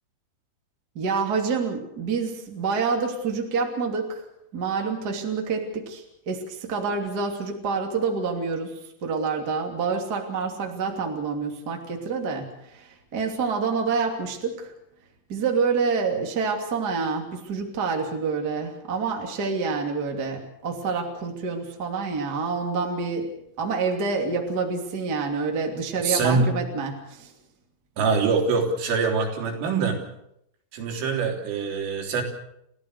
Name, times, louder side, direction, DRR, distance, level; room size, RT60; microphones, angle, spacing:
voice 1, 0.9-4.2 4.5-14.7 15.3-27.3, right 4 dB, 25° right, 2 dB, 2.4 m, -27 dB
voice 2, 26.0-26.5 28.0-30.0 30.7-32.2, right 4 dB, 80° right, 2 dB, 5.8 m, -24 dB
29.5 x 15.5 x 6.6 m, 0.77 s
omnidirectional pair, 5.6 m